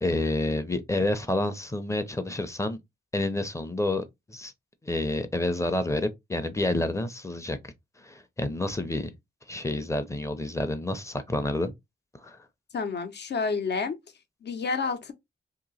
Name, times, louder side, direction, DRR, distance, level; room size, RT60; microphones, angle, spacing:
voice 1, 0.0-2.8 3.1-4.5 4.8-7.6 8.0-9.1 9.5-11.7 12.2-12.4, left 2 dB, 15° left, 0.5 m, -29 dB
voice 2, 12.7-14.0 14.4-15.1, left 4 dB, 70° left, 0.8 m, -29 dB
2.9 x 2.7 x 4.0 m
wide cardioid pair, 135°, 18 cm